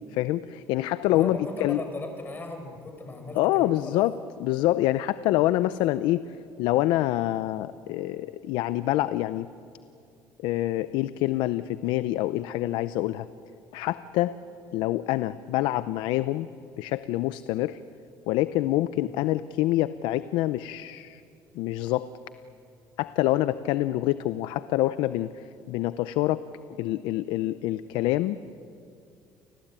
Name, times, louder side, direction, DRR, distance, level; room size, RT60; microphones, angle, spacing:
voice 1, 0.1-1.8 3.3-4.1 4.4-6.2 6.6-9.5 10.4-13.3 13.7-14.3 14.7-16.5 16.8-17.8 18.3-21.2 21.6-22.1 23.0-25.3 25.7-26.4 26.8-28.4, left 15 dB, 80° left, 14 dB, 0.6 m, -26 dB
voice 2, 1.1-4.0 18.9-19.1, left 2 dB, 25° left, 4 dB, 5.9 m, -37 dB
29.5 x 19.5 x 9.0 m, 2.5 s
supercardioid pair, 90°, 8 cm